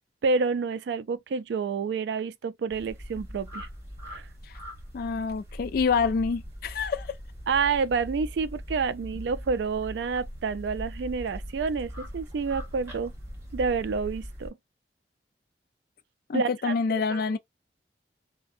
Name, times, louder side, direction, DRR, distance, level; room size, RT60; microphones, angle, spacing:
voice 1, 0.2-3.7 4.1-4.3 7.5-13.1 13.5-14.5 16.3-16.7 17.1-17.2, right 5 dB, 80° right, 0.3 m, -28 dB
sound 1, 2.7-14.5, equal, 15° right, 1.5 m, -41 dB
voice 2, 4.9-7.2 16.3-17.4, left 5 dB, 55° left, 0.3 m, -27 dB
2.6 x 2.1 x 2.4 m
head